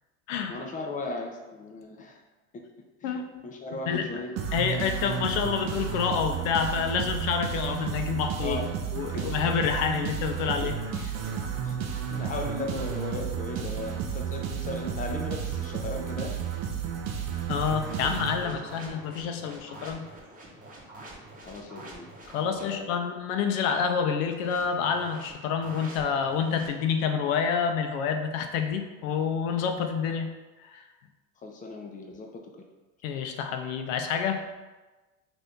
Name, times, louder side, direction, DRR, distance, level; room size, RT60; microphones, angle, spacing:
voice 1, 0.5-2.2 2.5-2.6 3.0-4.4 8.4-8.8 9.1-9.4 10.6-11.1 11.6-11.9 12.1-16.4 18.0-18.1 18.4-18.6 18.9-19.0 21.5-22.1 22.4-22.9 31.4-32.7, left 2 dB, 20° left, 2 dB, 0.5 m, -37 dB
voice 2, 3.0-3.4 3.9-4.2 4.5-8.6 8.9-10.7 17.5-20.1 22.3-30.3 30.6-30.8 33.0-34.5, left 6 dB, 75° left, 6 dB, 0.6 m, -28 dB
sound 1, 4.3-18.9, right 8 dB, 45° right, 0.5 m, -32 dB
sound 2, 17.6-22.8 24.2-26.7, right 1 dB, 20° right, 0.9 m, -47 dB
2.7 x 2.6 x 3.5 m, 1.2 s
supercardioid pair, 90°, 40 cm